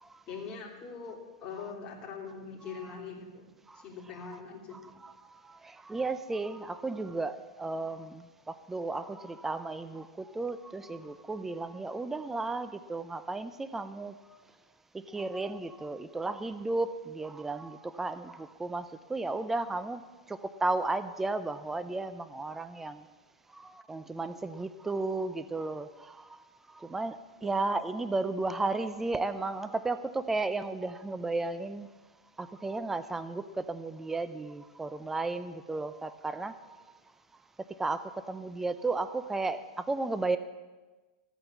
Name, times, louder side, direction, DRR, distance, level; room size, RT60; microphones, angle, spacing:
voice 1, 0.3-3.5 3.8-4.9 27.4-27.6, left 5 dB, 30° left, -2 dB, 3.2 m, -42 dB
voice 2, 4.7-14.2 14.9-20.0 20.3-23.0 23.5-26.4 26.7-31.9 32.4-36.6 37.8-40.4, right 3 dB, 10° right, 12 dB, 0.5 m, -34 dB
14.5 x 8.7 x 7.3 m, 1.2 s
supercardioid pair, 135°, 4 cm